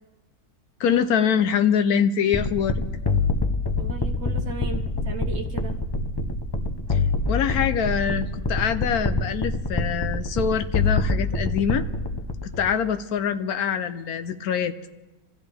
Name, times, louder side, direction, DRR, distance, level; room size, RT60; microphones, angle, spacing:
voice 1, 0.8-2.8 6.9-7.0 7.3-11.8 12.4-14.9, left 7 dB, 75° left, 10 dB, 1.2 m, -24 dB
sound 1, 2.3-12.8, left 3 dB, 30° left, 0.5 m, -26 dB
voice 2, 3.8-5.8, right 4 dB, 50° right, 4 dB, 1.2 m, -36 dB
25.5 x 14.0 x 3.4 m, 1.1 s
omnidirectional pair, 1.6 m